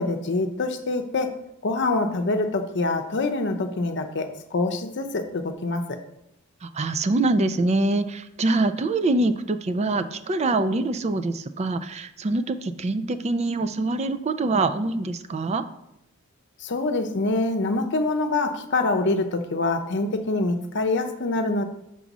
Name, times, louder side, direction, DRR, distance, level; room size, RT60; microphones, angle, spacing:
voice 1, 0.0-1.3 1.6-6.0 16.6-21.6, left 2 dB, 55° left, 6 dB, 0.7 m, -25 dB
voice 2, 6.6-15.6, right 2 dB, 30° right, 11 dB, 0.4 m, -24 dB
6.0 x 4.0 x 6.0 m, 0.84 s
head